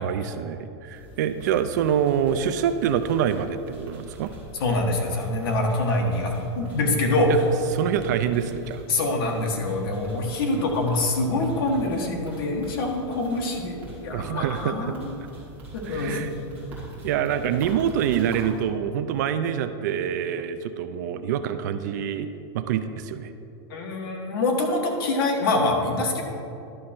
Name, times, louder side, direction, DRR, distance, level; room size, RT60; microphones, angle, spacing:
voice 1, 0.0-4.3 7.3-7.4 7.7-8.8 10.6-10.7 14.1-14.9 15.8-16.3 17.0-22.3 22.5-23.3, right 9 dB, 40° right, 10 dB, 0.3 m, -26 dB
sound 1, 0.9-18.6, right 2 dB, 15° right, 2.0 m, -43 dB
voice 2, 4.6-7.3 8.9-15.1 15.7-16.8 23.7-26.2, left 2 dB, 55° left, 1 dB, 1.5 m, -25 dB
11.5 x 6.3 x 4.4 m, 2.7 s
supercardioid pair, 180°, 14 cm